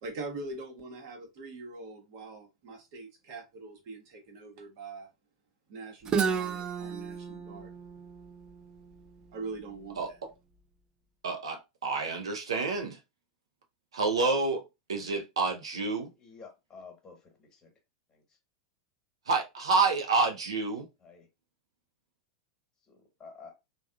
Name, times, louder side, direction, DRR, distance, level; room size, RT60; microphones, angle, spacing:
voice 1, 0.0-5.1 5.7-7.7 9.3-10.2, right 3 dB, 60° right, 1.1 m, -43 dB
Guitar, 6.1-9.8, right 6 dB, 30° right, 0.4 m, -33 dB
voice 2, 10.0-10.3 11.2-13.0 13.9-16.1 19.3-20.9, right 4 dB, 85° right, 0.6 m, -29 dB
voice 3, 16.2-17.7 18.1-18.2 21.0-21.3 22.9-23.5, left 4 dB, 20° left, 1.2 m, -51 dB
3.4 x 2.3 x 2.3 m
hypercardioid pair, 100°, 3 cm